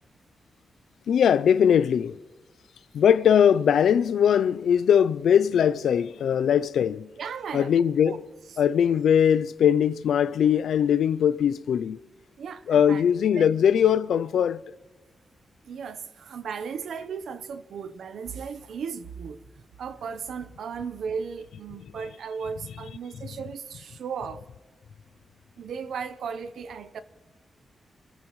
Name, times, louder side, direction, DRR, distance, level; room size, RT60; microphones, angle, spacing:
voice 1, 1.1-2.1 2.9-7.1 7.5-8.2 8.6-12.0 12.7-14.6, left 8 dB, 80° left, 0.4 m, -21 dB
voice 2, 7.2-7.7 8.0-8.2 12.4-13.0 13.3-13.5 15.6-19.4 19.8-24.4 25.6-27.0, right 6 dB, 75° right, 0.8 m, -36 dB
27.5 x 14.0 x 3.1 m
wide cardioid pair, 170°, 0 cm